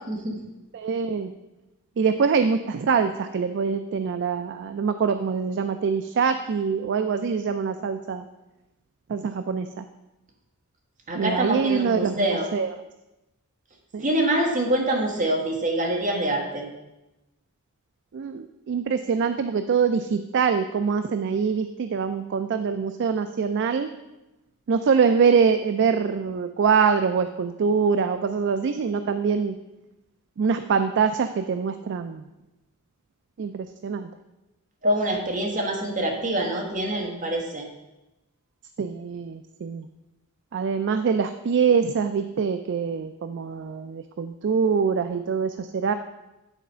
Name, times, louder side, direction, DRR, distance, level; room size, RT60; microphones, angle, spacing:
voice 1, 0.1-0.4 11.1-12.5 14.0-16.6 34.8-37.6, right 1 dB, 35° right, -1 dB, 1.5 m, -25 dB
voice 2, 0.7-1.3 2.0-8.3 9.1-9.8 11.1-12.7 13.9-14.1 18.1-23.9 24.7-29.6 30.4-32.3 33.4-34.1 38.8-39.9 40.5-45.9, right 6 dB, 50° right, 9 dB, 0.3 m, -24 dB
9.9 x 4.1 x 5.6 m, 0.99 s
head